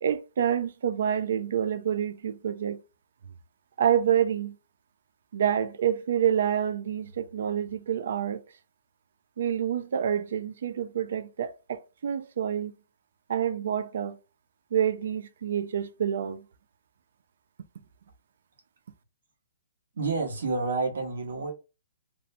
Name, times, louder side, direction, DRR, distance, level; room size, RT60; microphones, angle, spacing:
voice 1, 0.0-2.8 3.8-4.6 5.3-8.4 9.4-12.7 13.3-14.2 14.7-16.4, right 9 dB, 60° right, 0.3 m, -27 dB
voice 2, 19.9-21.5, right 3 dB, 75° right, 0.9 m, -29 dB
2.6 x 2.1 x 2.6 m
hypercardioid pair, 165°, 0 cm